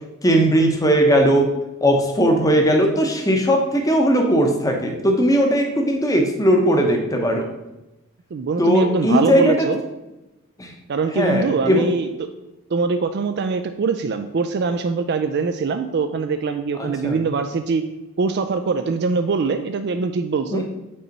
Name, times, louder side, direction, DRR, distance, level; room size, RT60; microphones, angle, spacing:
voice 1, 0.2-1.5 1.8-7.4 8.6-9.7 10.6-10.7 11.1-11.9 16.8-17.2 20.5-20.6, equal, 15° left, 2 dB, 0.8 m, -18 dB
voice 2, 8.3-9.8 10.9-12.1 12.7-17.8 18.2-20.6, right 4 dB, 50° right, 7 dB, 0.3 m, -23 dB
5.4 x 4.3 x 5.2 m, 0.99 s
head